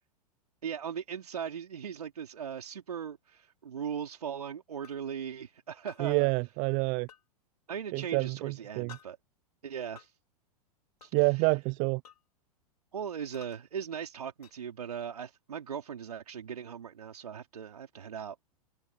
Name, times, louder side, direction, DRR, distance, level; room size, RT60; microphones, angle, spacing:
voice 1, 0.6-6.3 7.7-9.2 9.6-10.1 11.0-11.5 12.9-18.4, right 8 dB, 75° right, 3.8 m, -39 dB
sound 1, 4.8-5.0 5.9-6.0 7.1-7.2 8.9-9.1 10.0-10.1 11.0-11.2 12.0-12.2 13.3-13.6 14.4-14.5, left 8 dB, 80° left, 4.7 m, -52 dB
voice 2, 6.0-7.1 7.9-9.0 11.1-12.0, right 32 dB, 40° right, 0.6 m, -28 dB
open air
figure-of-eight pair, 100°, 20 cm